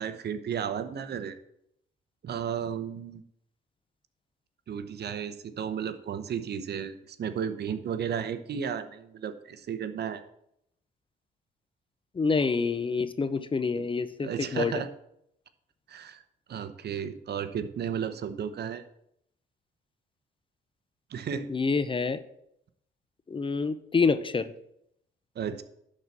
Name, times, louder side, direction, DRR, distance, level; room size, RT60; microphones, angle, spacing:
voice 1, 0.0-1.4 2.2-3.2 4.7-10.2 13.8-13.9 14.2-14.9 15.9-16.2 16.5-18.8 21.1-21.5 25.3-25.6, right 8 dB, 55° right, 11 dB, 0.9 m, -33 dB
voice 2, 12.2-14.7 21.5-22.2 23.3-24.5, left 4 dB, 25° left, 13 dB, 0.6 m, -27 dB
11.0 x 4.2 x 7.2 m, 0.75 s
cardioid pair, 90°, 20 cm